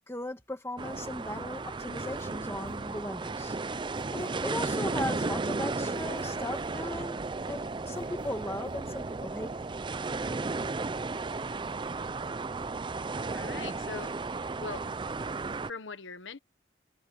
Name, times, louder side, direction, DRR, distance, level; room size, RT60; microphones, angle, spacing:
voice 1, 0.1-3.6 4.1-9.7, left 1 dB, 15° left, 1.8 m, -38 dB
sound 1, 0.8-15.7, right 3 dB, 25° right, 0.4 m, -34 dB
sound 2, 2.0-3.2 4.0-5.1 5.9-7.2 7.9-9.2, equal, 50° right, 7.1 m, -51 dB
voice 2, 13.3-14.1 14.6-14.9 15.7-16.4, left 5 dB, 75° left, 1.3 m, -41 dB
head